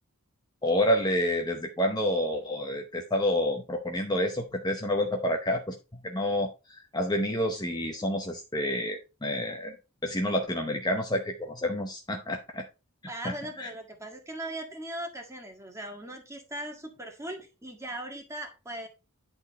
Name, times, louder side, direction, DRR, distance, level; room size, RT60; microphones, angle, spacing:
voice 1, 0.6-9.8 10.0-12.6 13.2-13.7, left 1 dB, 20° left, 3 dB, 0.8 m, -29 dB
voice 2, 13.1-18.9, right 1 dB, 15° right, 3 dB, 1.8 m, -39 dB
10.5 x 4.2 x 4.2 m, 0.29 s
head